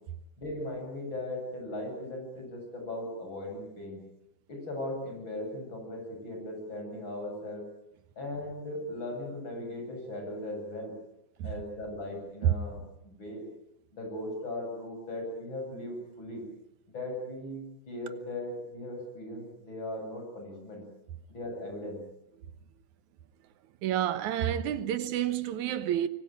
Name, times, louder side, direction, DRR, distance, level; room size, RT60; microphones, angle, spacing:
voice 1, 0.4-4.0 4.5-7.7 8.2-10.9 11.4-13.4 13.9-16.4 16.9-20.8 21.3-22.0, left 1 dB, 35° left, 8.7 m, -38 dB
voice 2, 23.8-26.1, right 11 dB, 70° right, 2.4 m, -28 dB
25.0 x 24.5 x 9.2 m
omnidirectional pair, 3.7 m